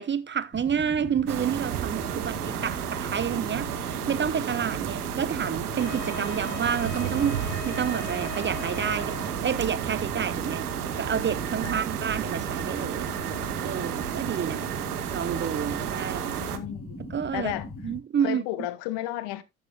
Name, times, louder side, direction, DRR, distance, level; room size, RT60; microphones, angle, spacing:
voice 1, 0.0-10.7 11.0-13.1 13.6-14.7 15.1-16.4 17.1-17.5 17.8-18.4, right 8 dB, 25° right, 0.6 m, -29 dB
sound 1, 0.5-18.0, left 2 dB, 10° left, 5.9 m, -40 dB
sound 2, 1.3-16.6, right 10 dB, 85° right, 1.0 m, -32 dB
Wind instrument woodwind instrument, 5.8-9.7, left 7 dB, 85° left, 1.1 m, -41 dB
voice 2, 16.4-17.0 17.3-17.7 18.2-19.4, left 14 dB, 60° left, 1.1 m, -33 dB
13.0 x 7.2 x 2.3 m
hypercardioid pair, 60°, 45 cm